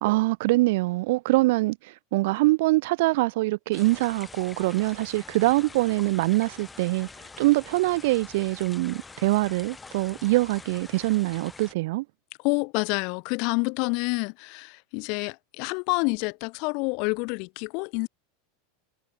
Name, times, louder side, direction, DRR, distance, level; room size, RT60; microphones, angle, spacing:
voice 1, 0.0-7.1 7.4-12.0, right 21 dB, 70° right, 0.6 m, -24 dB
sound 1, 3.7-11.7, left 4 dB, 15° left, 1.6 m, -45 dB
voice 2, 12.4-18.1, left 34 dB, 55° left, 1.0 m, -28 dB
supercardioid pair, 120°, 0 cm